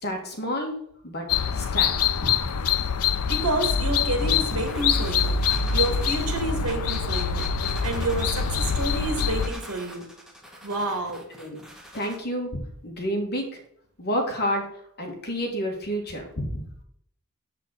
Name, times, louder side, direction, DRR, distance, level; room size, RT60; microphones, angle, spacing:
voice 1, 0.0-0.8 1.0-1.9 2.2-2.5 11.4-11.6 11.9-12.5 12.8-13.6 14.0-14.7 15.0-16.6, equal, 50° left, 2 dB, 2.1 m, -29 dB
sound 1, 1.3-9.5, left 6 dB, 85° left, 0.6 m, -25 dB
voice 2, 3.3-5.4 5.7-7.5 7.8-10.1 10.6-11.3, right 2 dB, 70° right, 4 dB, 2.5 m, -29 dB
sound 2, 4.2-12.2, equal, ahead, 1.8 m, -42 dB
8.2 x 7.6 x 4.2 m, 0.69 s
head